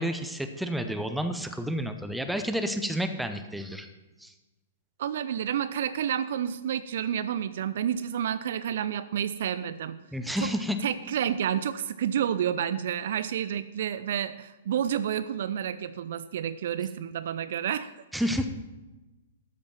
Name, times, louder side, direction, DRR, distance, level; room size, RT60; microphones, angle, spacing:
voice 1, 0.0-3.9 4.2-4.3 10.1-10.8 18.1-18.5, equal, ahead, 7 dB, 0.7 m, -30 dB
voice 2, 5.0-10.0 10.4-10.5 10.8-17.9, right 9 dB, 55° right, 14 dB, 0.3 m, -30 dB
13.0 x 5.2 x 5.8 m, 1.1 s
figure-of-eight pair, 110°, 0 cm